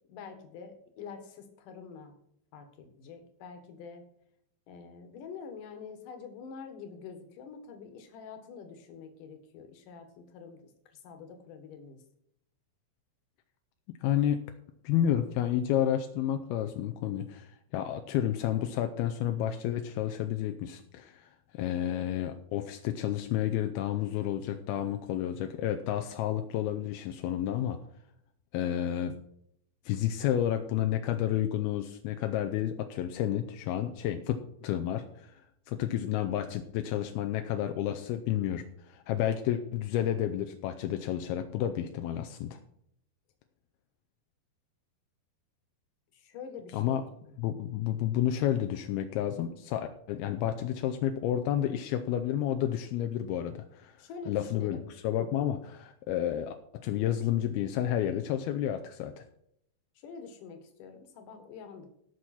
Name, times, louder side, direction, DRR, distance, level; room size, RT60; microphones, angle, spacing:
voice 1, 0.1-2.1 2.5-4.0 4.7-12.0 46.1-47.3 54.0-54.9 59.9-61.9, left 5 dB, 60° left, 6 dB, 2.6 m, -46 dB
voice 2, 14.0-14.4 14.8-27.8 28.5-29.1 29.9-35.3 35.7-42.6 46.7-47.0 47.4-54.0 54.3-59.2, left 11 dB, 80° left, 6 dB, 2.2 m, -31 dB
17.5 x 6.2 x 4.3 m, 0.73 s
omnidirectional pair, 5.2 m